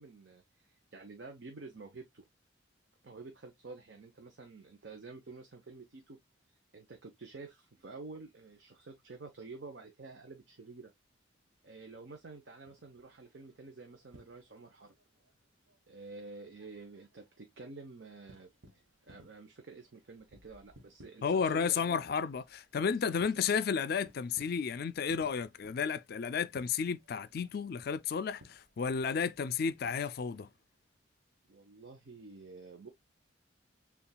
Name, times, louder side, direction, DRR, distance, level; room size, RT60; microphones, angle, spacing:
voice 1, 0.0-2.2 3.0-6.2 6.7-10.9 11.6-14.9 15.9-18.5 19.1-22.0 22.8-23.1 31.5-32.9, right 3 dB, 60° right, 0.8 m, -49 dB
sound 1, 12.6-30.2, right 1 dB, 90° right, 1.2 m, -63 dB
voice 2, 21.2-30.5, left 6 dB, 50° left, 0.4 m, -32 dB
6.8 x 2.4 x 2.2 m
head